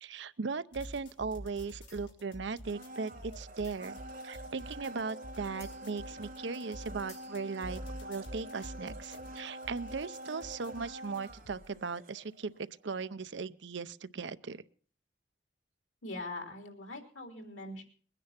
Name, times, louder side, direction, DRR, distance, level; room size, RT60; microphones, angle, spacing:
voice 1, 0.0-4.0 4.2-12.5 12.8-14.6, right 4 dB, 70° right, 14 dB, 0.6 m, -38 dB
sound 1, 0.7-11.7, equal, 65° left, 4.3 m, -48 dB
sound 2, 1.9-2.2 3.6-4.3 5.1-5.2 5.6-6.1 6.4-6.5 6.9-7.7, left 2 dB, 40° left, 7.3 m, -57 dB
Domestic sounds home sounds, 2.6-12.6 12.9-13.0, right 1 dB, 45° right, 3.3 m, -47 dB
voice 2, 16.0-17.8, left 2 dB, 90° left, 4 dB, 3.6 m, -42 dB
21.5 x 10.0 x 5.8 m, 0.44 s
head